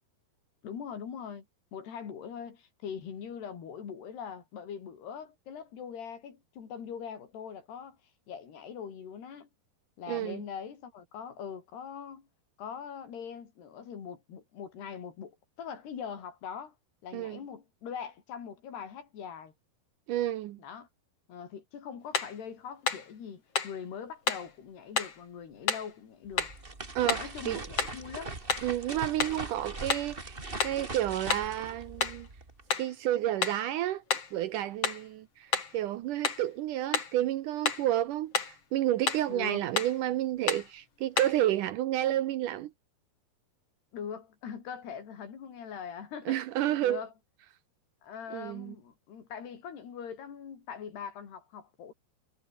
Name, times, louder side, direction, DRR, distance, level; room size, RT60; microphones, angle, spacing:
voice 1, 0.6-1.5 1.7-8.0 8.3-9.5 10.0-12.3 12.6-16.7 17.0-19.5 20.6-20.9 21.3-26.5 27.2-28.3 39.3-39.7 43.9-46.4 46.8-47.1 48.0-51.9, left 7 dB, 85° left, 6.0 m, -42 dB
voice 2, 10.1-10.4 17.1-17.4 20.1-20.6 27.0-27.6 28.6-30.4 30.6-32.3 32.8-34.0 34.3-38.3 38.7-42.7 46.3-47.0 48.3-48.7, right 13 dB, 75° right, 2.0 m, -30 dB
sound 1, 22.1-22.4 22.9-23.1 23.6-23.8 24.3-24.5 25.0-25.2 25.7-25.9 26.4-26.6 27.1-27.3 27.8-28.0 28.5-28.7 29.2-29.4 29.9-30.1 30.6-30.9 31.3-31.5 32.0-32.3 32.7-32.9 33.4-33.6 34.1-34.3 34.8-35.1 35.5-35.8 36.2-36.5 36.9-37.2 37.6-37.9 38.3-38.6 39.0-39.3 39.8-40.0 40.5-40.7 41.2-41.4, left 5 dB, 40° left, 4.0 m, -31 dB
sound 2, 26.3-32.6, right 2 dB, 15° right, 2.3 m, -41 dB
omnidirectional pair, 4.6 m